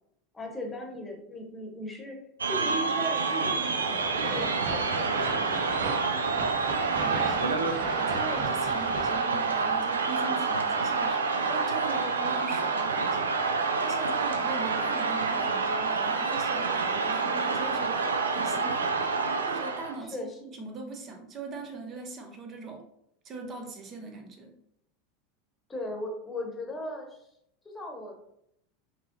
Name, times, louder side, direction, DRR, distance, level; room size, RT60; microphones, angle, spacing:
voice 1, 0.3-2.2 2.5-6.1 20.1-20.3 25.7-27.3 27.7-28.2, equal, 15° left, 2 dB, 1.2 m, -37 dB
sound 1, 2.4-20.0, right 4 dB, 80° right, 0.4 m, -28 dB
sound 2, 3.9-9.2, right 3 dB, 60° right, 1.1 m, -37 dB
voice 2, 6.9-19.0 19.4-22.8 23.2-24.5, right 3 dB, 35° right, 3 dB, 1.0 m, -41 dB
5.8 x 3.0 x 3.0 m, 0.75 s
figure-of-eight pair, 80°, 0 cm